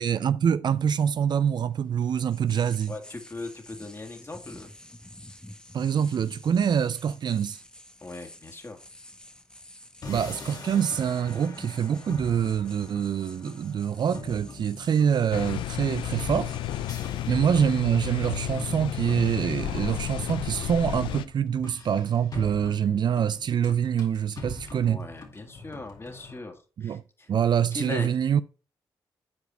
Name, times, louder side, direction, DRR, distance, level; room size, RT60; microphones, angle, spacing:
voice 1, 0.0-2.9 5.7-7.6 10.1-16.5 17.3-25.1 26.8-27.0 27.3-28.4, right 8 dB, 60° right, 0.5 m, -25 dB
sound 1, 0.7-19.1, left 1 dB, 10° left, 1.0 m, -50 dB
voice 2, 2.9-4.7 8.0-8.8 17.0-17.3 24.8-27.3 27.7-28.1, left 2 dB, 30° left, 2.2 m, -39 dB
sound 2, 10.0-26.4, left 3 dB, 50° left, 2.4 m, -43 dB
sound 3, 15.3-21.3, left 13 dB, 90° left, 0.4 m, -32 dB
8.3 x 4.8 x 4.2 m
supercardioid pair, 50°, 8 cm